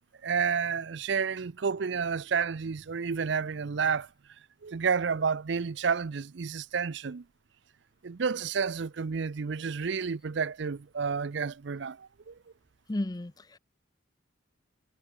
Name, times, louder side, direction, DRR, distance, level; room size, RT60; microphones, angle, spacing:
voice 1, 0.2-4.1 4.6-7.2 8.0-12.4, right 6 dB, 60° right, 0.5 m, -30 dB
voice 2, 12.9-13.6, left 1 dB, 20° left, 0.5 m, -33 dB
head